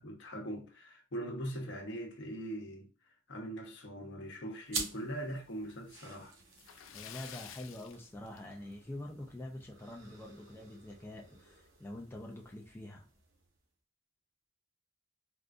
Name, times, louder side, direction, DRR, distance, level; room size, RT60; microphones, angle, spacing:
voice 1, 0.0-2.9 3.3-6.3, right 1 dB, 65° left, 0.8 m, -41 dB
sound 1, 4.7-13.6, right 4 dB, 80° right, 0.9 m, -48 dB
Splash splatter, 6.5-8.9 9.2-9.4 9.8-9.9 11.4-11.5 11.8-11.9 12.5-12.8, left 9 dB, 85° left, 0.4 m, -50 dB
voice 2, 6.9-13.1, left 1 dB, 10° left, 0.4 m, -46 dB
3.6 x 2.5 x 2.4 m
head